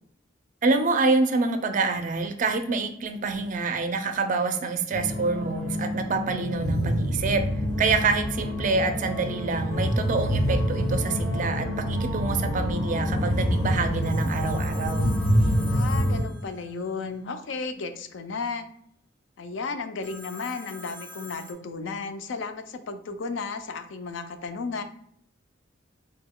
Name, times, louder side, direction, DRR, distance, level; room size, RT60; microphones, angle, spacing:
voice 1, 0.6-7.5 7.8-15.1, right 3 dB, 40° right, 8 dB, 0.4 m, -26 dB
sound 1, 4.9-16.2, equal, 90° left, 1.4 m, -26 dB
Telephone, 14.0-17.1 20.0-21.5, left 2 dB, 10° left, 0.5 m, -44 dB
voice 2, 15.7-18.7 19.4-24.8, left 4 dB, 70° left, 9 dB, 0.4 m, -34 dB
3.9 x 2.2 x 3.6 m, 0.68 s
head